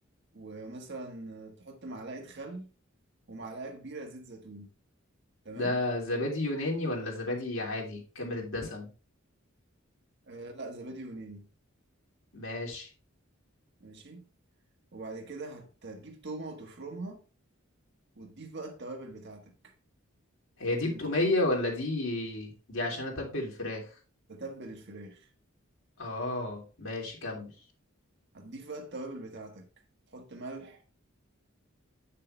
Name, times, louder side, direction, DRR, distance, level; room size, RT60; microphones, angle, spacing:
voice 1, 0.3-2.7 3.3-4.7 5.4-5.8 10.2-11.5 13.8-14.3 14.9-17.2 18.2-19.7 20.8-21.0 24.3-25.3 28.3-29.7 30.1-30.9, right 2 dB, 55° right, 1.5 m, -42 dB
voice 2, 5.5-8.9 12.3-12.9 20.6-23.9 26.0-27.5, left 2 dB, 75° left, 3.2 m, -32 dB
8.3 x 6.7 x 3.2 m
head